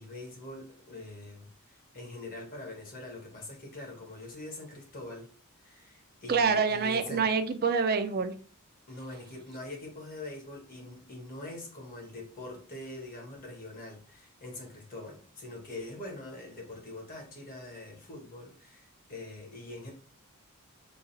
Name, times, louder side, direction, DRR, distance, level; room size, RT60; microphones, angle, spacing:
voice 1, 0.0-5.3 5.6-7.3 8.9-19.9, left 2 dB, 40° left, 0 dB, 1.3 m, -44 dB
voice 2, 6.3-8.3, right 5 dB, 45° right, 8 dB, 0.4 m, -26 dB
3.9 x 2.4 x 3.9 m, 0.42 s
head